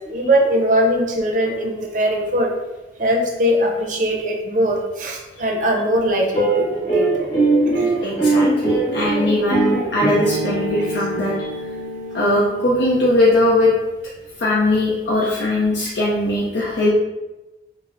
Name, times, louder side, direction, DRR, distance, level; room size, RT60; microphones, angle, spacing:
voice 1, 0.1-2.5 3.0-7.1 7.6-7.9, equal, 45° right, 1 dB, 0.5 m, -20 dB
sound 1, 6.3-12.9, right 2 dB, 30° left, 1.2 m, -21 dB
voice 2, 8.0-11.6 12.1-13.7 14.4-16.9, left 1 dB, 65° left, -5 dB, 0.5 m, -19 dB
5.5 x 2.0 x 2.5 m, 1.1 s
head